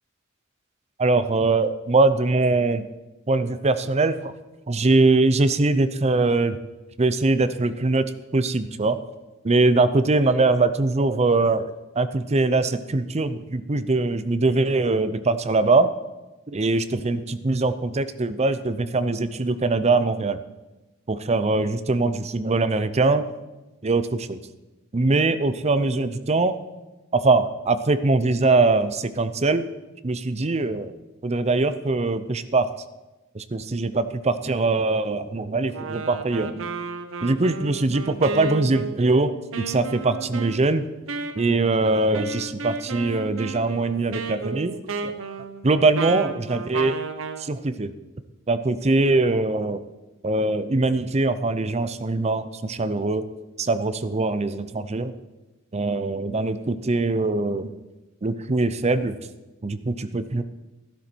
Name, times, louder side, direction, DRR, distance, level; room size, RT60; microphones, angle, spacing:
voice 1, 1.0-2.9 3.3-4.3 4.7-6.6 7.0-8.0 8.3-9.0 9.4-15.9 16.5-20.4 21.1-23.3 23.8-24.4 24.9-26.6 27.1-29.6 30.0-30.9 31.2-32.7 33.3-36.7 37.2-40.8 41.4-44.8 45.6-47.0 47.4-47.9 48.5-49.8 50.2-53.2 53.6-55.1 55.7-57.7 58.2-59.2 59.6-60.4, right 3 dB, 30° right, 12 dB, 0.6 m, -22 dB
Wind instrument woodwind instrument, 35.7-47.5, right 4 dB, 70° right, 0.8 m, -33 dB
13.0 x 12.0 x 4.5 m, 1.1 s
head